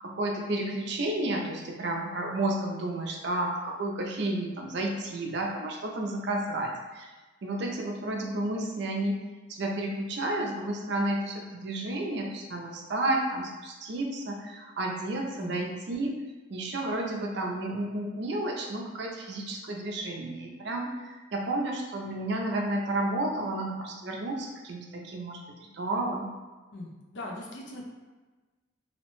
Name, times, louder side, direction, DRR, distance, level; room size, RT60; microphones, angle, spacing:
voice 1, 0.0-7.1 7.4-9.2 9.5-16.1 16.5-25.4 25.7-26.3, right 1 dB, 60° right, 0 dB, 0.4 m, -31 dB
voice 2, 15.3-15.6 26.7-27.8, left 2 dB, 65° left, -1 dB, 0.5 m, -40 dB
2.7 x 2.1 x 3.0 m, 1.3 s
head